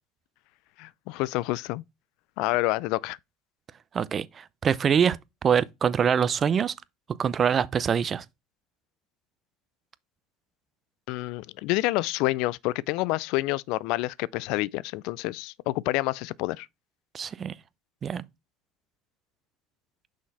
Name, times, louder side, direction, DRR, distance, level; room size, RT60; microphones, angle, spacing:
voice 1, 0.8-1.8 2.4-3.2 11.1-16.7, left 20 dB, 70° left, 0.3 m, -28 dB
voice 2, 3.9-5.2 5.4-6.7 7.2-8.2 17.1-17.5 18.0-18.2, right 7 dB, 40° right, 0.5 m, -24 dB
6.2 x 3.9 x 4.1 m
supercardioid pair, 85°, 0 cm